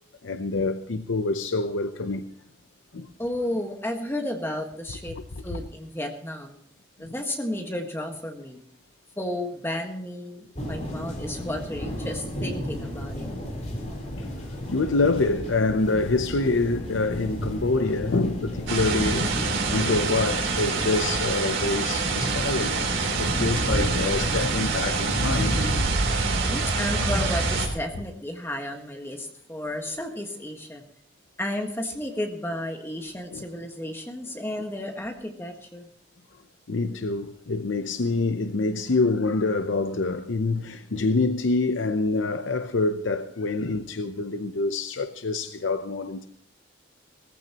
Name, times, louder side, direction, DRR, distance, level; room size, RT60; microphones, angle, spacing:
voice 1, 0.2-2.2 2.9-3.1 5.5-5.6 14.2-14.3 14.7-22.8 23.2-25.6 33.3-33.4 36.7-46.3, left 3 dB, 85° left, 0.7 m, -26 dB
voice 2, 3.2-5.1 5.4-6.6 7.0-8.6 9.2-13.3 24.5-24.6 26.2-30.8 31.4-35.9, left 1 dB, 10° left, 1.5 m, -32 dB
sound 1, 10.5-25.8, equal, 35° left, 3.6 m, -32 dB
sound 2, 18.7-27.7, right 4 dB, 90° right, 3.4 m, -26 dB
18.0 x 15.0 x 2.9 m
head